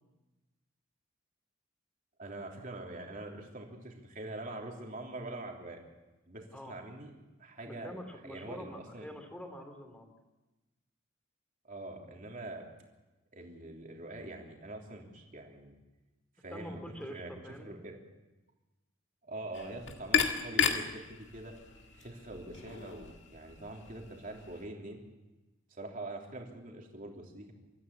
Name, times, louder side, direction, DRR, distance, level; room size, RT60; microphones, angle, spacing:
voice 1, 2.2-5.8 6.3-7.1 7.4-9.1 11.6-12.6 13.3-15.7 16.4-17.3 17.6-18.0 19.3-21.5 21.9-25.0 25.7-27.5, right 2 dB, 45° right, 0 dB, 3.4 m, -44 dB
voice 2, 7.6-10.1 16.5-17.7, equal, 5° left, 5 dB, 2.8 m, -46 dB
sound 1, 19.5-24.6, left 7 dB, 65° left, 2.0 m, -34 dB
26.0 x 14.0 x 8.5 m, 1.1 s
head